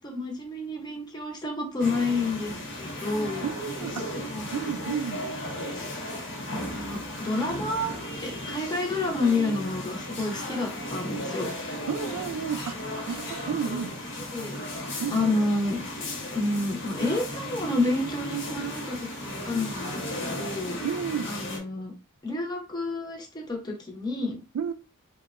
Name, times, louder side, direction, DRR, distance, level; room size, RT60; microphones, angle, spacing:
voice 1, 0.0-3.5 4.1-4.5 6.7-7.9 8.2-11.5 14.3-14.5 15.1-15.8 16.3-20.8 21.2-21.9 22.2-24.4, left 2 dB, 20° left, 0.6 m, -29 dB
sound 1, 1.8-21.6, left 1 dB, 55° left, 0.8 m, -35 dB
voice 2, 3.4-4.1 4.5-5.2 11.9-12.8 13.1-13.9 15.0-15.2 20.8-21.3 24.5-24.7, right 7 dB, 80° right, 0.3 m, -31 dB
2.8 x 2.1 x 2.3 m
head